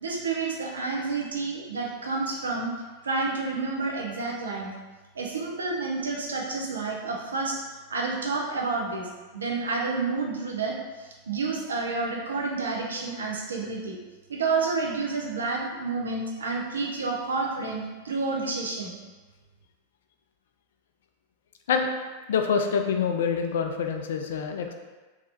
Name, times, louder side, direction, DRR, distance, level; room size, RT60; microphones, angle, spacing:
voice 1, 0.0-2.7 3.0-4.7 5.1-7.6 7.9-14.0 14.3-19.0, right 3 dB, 70° right, -1 dB, 0.5 m, -29 dB
voice 2, 22.3-24.7, left 6 dB, 60° left, 5 dB, 0.3 m, -26 dB
3.2 x 2.7 x 2.6 m, 1.2 s
figure-of-eight pair, 90°, 0 cm